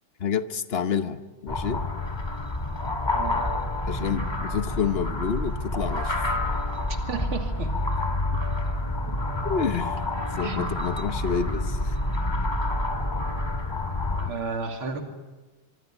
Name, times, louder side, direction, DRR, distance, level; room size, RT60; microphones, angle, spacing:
voice 1, 0.2-1.8 3.9-6.3 8.3-8.4 9.4-11.9, left 6 dB, 50° left, 11 dB, 0.7 m, -29 dB
sound 1, 1.5-14.3, left 2 dB, 10° left, 2.1 m, -28 dB
voice 2, 7.1-7.8 9.1-9.2 10.4-10.7 14.2-15.0, right 5 dB, 85° right, 5 dB, 3.4 m, -32 dB
24.5 x 24.5 x 9.0 m, 1.2 s
omnidirectional pair, 2.3 m